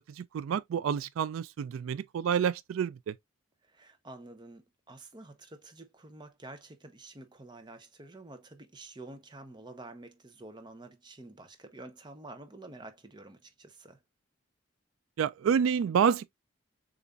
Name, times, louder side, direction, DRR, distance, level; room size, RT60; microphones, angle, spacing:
voice 1, 0.0-3.1 15.2-16.3, right 7 dB, 85° right, 0.3 m, -28 dB
voice 2, 3.6-14.0, right 2 dB, 20° right, 0.6 m, -49 dB
6.8 x 2.5 x 2.4 m
head